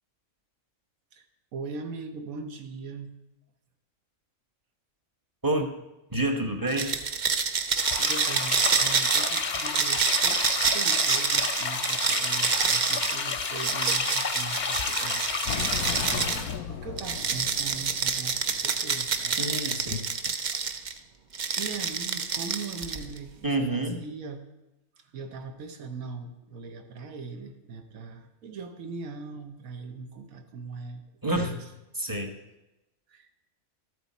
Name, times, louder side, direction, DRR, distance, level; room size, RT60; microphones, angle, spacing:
voice 1, 1.5-3.1 7.9-19.5 21.6-24.4 25.0-31.0 31.3-31.6 33.1-33.3, right 4 dB, 70° right, 6 dB, 1.4 m, -40 dB
voice 2, 6.1-7.0 19.4-20.0 23.4-24.0 31.2-31.6 31.9-32.4, right 1 dB, 20° right, 4 dB, 0.7 m, -28 dB
sound 1, 6.7-16.4 17.0-20.9 21.3-23.2, right 6 dB, 55° right, 0.5 m, -27 dB
sound 2, 7.8-16.6, left 5 dB, 45° left, 0.7 m, -31 dB
sound 3, 15.5-19.2, left 9 dB, 90° left, 1.1 m, -37 dB
13.0 x 8.1 x 4.2 m, 0.97 s
omnidirectional pair, 1.5 m